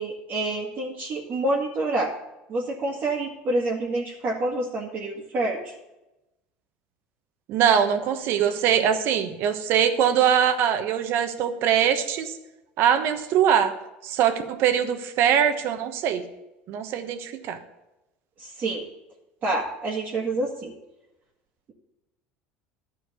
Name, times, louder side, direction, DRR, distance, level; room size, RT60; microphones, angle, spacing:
voice 1, 0.0-2.1 2.5-5.7 8.8-8.9 18.4-18.8 19.4-20.7, right 2 dB, 40° right, -3 dB, 1.8 m, -27 dB
voice 2, 7.5-12.3 12.8-13.7 14.0-16.2 16.7-17.6, right 8 dB, 60° right, 8 dB, 1.1 m, -22 dB
12.0 x 4.6 x 8.3 m, 0.97 s
supercardioid pair, 115°, 5 cm